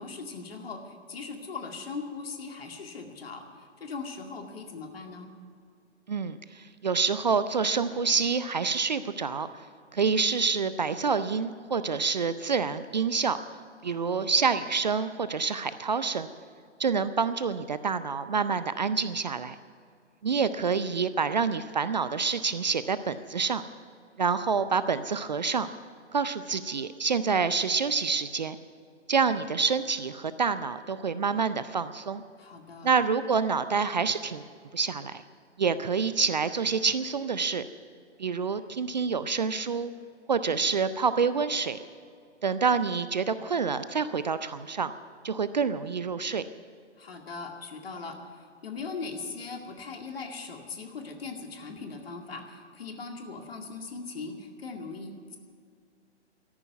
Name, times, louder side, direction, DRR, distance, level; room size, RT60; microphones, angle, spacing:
voice 1, 0.0-5.3 13.8-14.4 32.4-32.9 47.0-55.4, left 4 dB, 55° left, 3 dB, 2.3 m, -40 dB
voice 2, 6.1-9.5 9.9-13.4 13.8-16.3 16.8-19.6 20.2-23.6 24.2-25.7 26.1-28.6 29.1-32.2 32.8-34.5 34.7-35.2 35.6-37.6 38.2-39.9 40.3-41.8 42.4-44.9 45.2-46.4, right 5 dB, 40° right, 13 dB, 0.5 m, -27 dB
13.5 x 11.0 x 9.2 m, 2.2 s
figure-of-eight pair, 135°, 35 cm